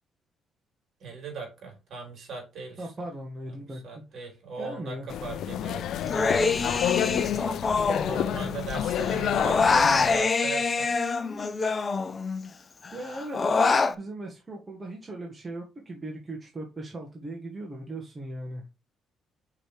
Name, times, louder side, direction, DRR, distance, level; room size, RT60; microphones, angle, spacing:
voice 1, 1.0-2.9 3.7-6.2 7.1-7.6 8.0-10.9, right 4 dB, 60° right, 4.0 m, -39 dB
voice 2, 2.8-3.8 4.1-4.3 4.6-5.1 12.9-18.7, right 1 dB, 25° right, 1.8 m, -38 dB
sound 1, 5.1-10.2, left 10 dB, 75° left, 0.5 m, -29 dB
Human voice, 6.1-8.7 9.0-12.5 12.8-13.9, left 4 dB, 30° left, 0.7 m, -25 dB
5.7 x 5.1 x 4.9 m
cardioid pair, 105°, 0 cm